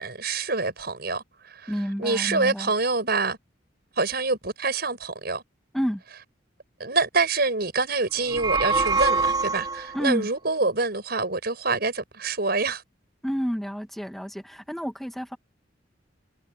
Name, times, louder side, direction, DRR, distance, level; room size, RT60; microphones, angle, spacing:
voice 1, 0.0-1.7 2.0-3.4 4.0-5.4 6.8-12.8, right 3 dB, 55° right, 6.5 m, -26 dB
voice 2, 1.7-2.7 5.7-6.0 9.9-10.3 13.2-15.4, equal, ahead, 2.0 m, -29 dB
sound 1, 8.2-10.1, right 4 dB, 25° right, 3.1 m, -24 dB
head